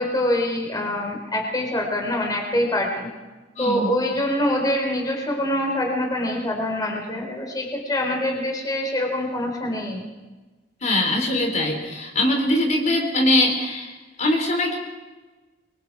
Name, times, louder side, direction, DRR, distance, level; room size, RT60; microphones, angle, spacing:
voice 1, 0.0-3.1 3.6-10.0, left 1 dB, 20° left, 1 dB, 4.0 m, -25 dB
voice 2, 3.6-3.9 10.8-14.8, left 1 dB, 40° left, 2 dB, 3.9 m, -22 dB
27.5 x 23.5 x 4.8 m, 1.2 s
head